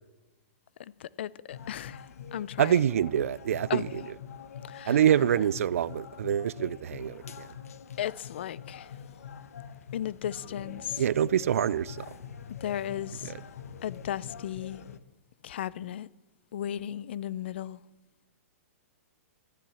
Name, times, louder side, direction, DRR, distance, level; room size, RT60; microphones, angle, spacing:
voice 1, 1.0-2.0 2.3-2.8 3.7-3.8 4.7-5.0 8.0-8.9 9.9-11.0 12.6-13.3 13.8-14.8 15.4-16.1 16.5-17.8, left 11 dB, 45° left, 0.4 m, -35 dB
sound 1, 1.5-15.0, left 7 dB, 80° left, 0.9 m, -44 dB
voice 2, 2.6-4.0 4.9-7.5 11.0-12.1 13.2-13.4, right 10 dB, 70° right, 0.4 m, -26 dB
Bass guitar, 10.4-13.9, right 2 dB, 5° right, 2.6 m, -56 dB
13.5 x 10.5 x 7.0 m
hypercardioid pair, 180°, 8 cm